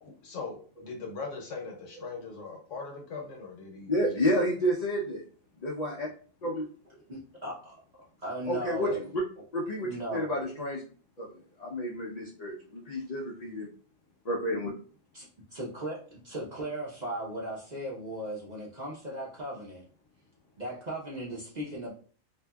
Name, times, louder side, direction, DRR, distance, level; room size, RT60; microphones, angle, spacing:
voice 1, 0.0-4.3 8.5-9.0, left 4 dB, 70° left, 2 dB, 1.1 m, -40 dB
voice 2, 3.9-5.2 5.6-6.1 6.4-6.7 8.5-9.2 9.5-10.8 11.2-13.7 14.2-14.7, equal, 50° left, -4 dB, 0.4 m, -30 dB
voice 3, 7.1-7.5 8.2-8.9 9.8-10.3 15.1-19.8 20.6-21.9, right 1 dB, 40° right, -5 dB, 0.7 m, -37 dB
2.7 x 2.6 x 2.2 m, 0.42 s
omnidirectional pair, 1.4 m